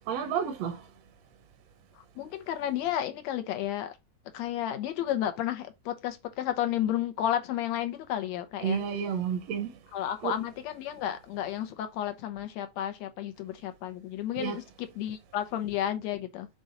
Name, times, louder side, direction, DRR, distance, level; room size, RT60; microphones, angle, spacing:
voice 1, 0.1-0.8 8.6-9.7 10.2-10.3 14.4-14.6, right 7 dB, 70° right, 1.7 m, -30 dB
voice 2, 2.2-4.0 4.3-8.8 9.9-16.5, left 11 dB, 75° left, 2.0 m, -32 dB
6.3 x 3.8 x 4.0 m
omnidirectional pair, 3.4 m